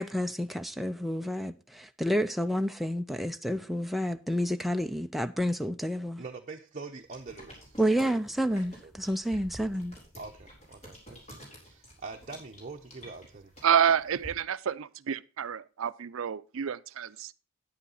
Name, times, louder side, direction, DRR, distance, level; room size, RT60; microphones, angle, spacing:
voice 1, 0.0-6.2 7.8-10.0, equal, ahead, 0.4 m, -30 dB
voice 2, 6.2-8.2 8.5-8.6 10.2-13.5, right 4 dB, 40° right, 0.7 m, -44 dB
sound 1, 7.1-14.3, equal, 35° left, 4.0 m, -50 dB
voice 3, 13.6-17.3, right 8 dB, 80° right, 0.5 m, -28 dB
9.5 x 8.5 x 4.0 m
head